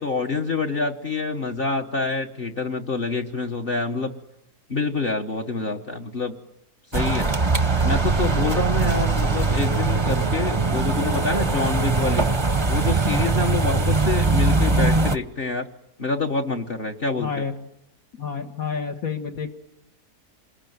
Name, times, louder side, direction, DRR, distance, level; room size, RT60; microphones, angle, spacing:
voice 1, 0.0-4.1 4.7-6.3 6.9-7.3 7.8-12.3 12.7-15.7 16.0-17.4, left 3 dB, 35° left, 6 dB, 1.4 m, -26 dB
sound 1, 6.9-15.2, right 3 dB, 20° right, 0.8 m, -21 dB
voice 2, 17.2-17.5 18.2-19.6, left 6 dB, 60° left, 1 dB, 1.8 m, -29 dB
27.5 x 21.5 x 9.4 m, 0.89 s
omnidirectional pair, 1.7 m